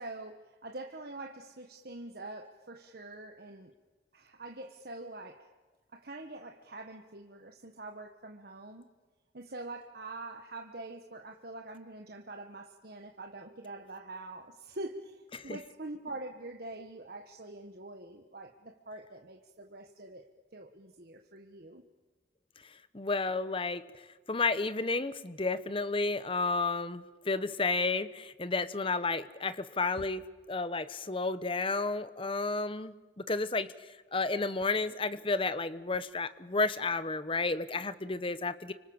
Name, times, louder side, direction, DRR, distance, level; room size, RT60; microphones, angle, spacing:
voice 1, 0.0-3.7 4.1-5.5 5.9-8.9 9.3-21.8, right 2 dB, 55° right, 3 dB, 1.5 m, -45 dB
voice 2, 22.9-24.0 24.3-32.9 33.3-33.7 34.1-38.7, left 3 dB, 30° left, 14 dB, 1.0 m, -32 dB
30.0 x 26.0 x 7.2 m, 1.3 s
head